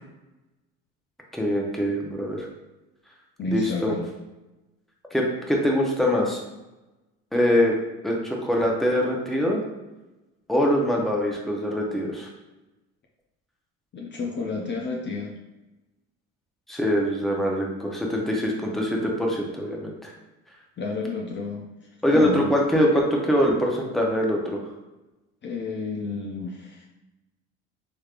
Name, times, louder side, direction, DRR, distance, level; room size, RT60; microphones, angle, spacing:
voice 1, 1.3-2.5 3.5-3.9 5.1-6.4 7.3-7.7 8.0-9.6 10.5-12.3 16.7-20.1 22.0-24.6, equal, ahead, -1 dB, 0.7 m, -23 dB
voice 2, 3.4-4.1 13.9-15.3 20.8-21.6 22.1-22.6 25.4-26.9, left 3 dB, 35° left, 0 dB, 0.5 m, -30 dB
3.3 x 3.1 x 2.4 m, 1.0 s
supercardioid pair, 80°, 31 cm